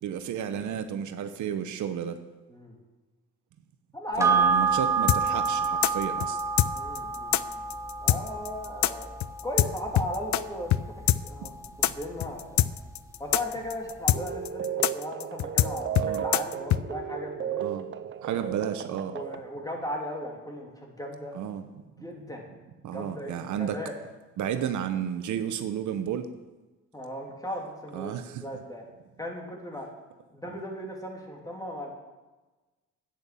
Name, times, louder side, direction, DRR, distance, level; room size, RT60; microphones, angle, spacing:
voice 1, 0.0-2.2 4.2-6.4 16.0-16.2 17.6-17.9 18.2-19.2 21.3-21.6 22.8-23.8 24.4-26.3 27.9-28.4, right 9 dB, 75° right, 9 dB, 0.9 m, -32 dB
voice 2, 3.9-4.4 6.7-7.6 8.0-9.1 9.4-10.7 11.2-11.5 11.8-12.7 13.2-17.7 19.1-21.3 22.0-22.5 22.8-23.9 26.9-28.1 28.4-28.8 29.2-29.9 30.3-31.9, left 1 dB, 10° left, 0 dB, 3.1 m, -37 dB
sound 1, 4.2-12.9 13.3-13.4, right 5 dB, 10° right, 1.5 m, -29 dB
sound 2, 5.1-10.4 10.7-10.8 11.1-16.8, left 13 dB, 70° left, 0.5 m, -24 dB
sound 3, 14.1-19.4, right 9 dB, 40° right, 0.7 m, -34 dB
10.5 x 9.1 x 7.0 m, 1.2 s
cardioid pair, 90°, 30 cm